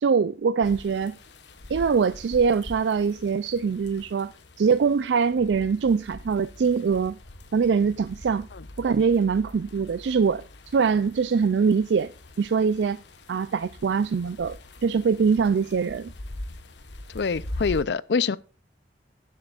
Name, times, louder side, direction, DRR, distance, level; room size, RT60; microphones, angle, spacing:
voice 1, 0.0-1.1 1.7-4.3 4.6-7.2 7.5-8.5 8.8-10.4 10.7-12.1 12.4-13.0 13.3-16.1, right 5 dB, 80° right, 0.4 m, -23 dB
sound 1, 0.6-17.9, left 1 dB, 90° left, 1.2 m, -43 dB
voice 2, 17.1-18.4, left 5 dB, 70° left, 0.5 m, -25 dB
17.0 x 7.6 x 2.4 m
head